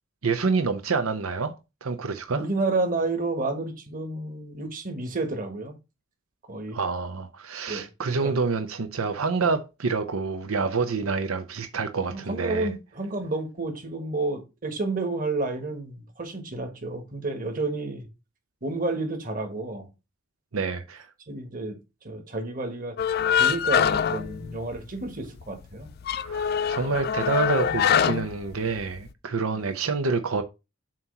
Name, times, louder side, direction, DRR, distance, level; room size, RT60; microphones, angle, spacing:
voice 1, 0.2-1.5 1.8-2.5 6.7-12.7 20.5-21.1 26.1-30.4, right 4 dB, 90° right, 0.7 m, -27 dB
voice 2, 2.3-5.7 6.5-6.8 7.7-8.3 12.1-18.1 18.6-19.9 21.3-21.8 22.0-22.9 23.3-25.9 29.5-29.7, right 2 dB, 40° right, 1.6 m, -30 dB
sound 1, 23.0-25.1 25.4-25.5 25.9-29.1, left 8 dB, 50° left, 0.3 m, -24 dB
7.4 x 3.0 x 5.5 m
head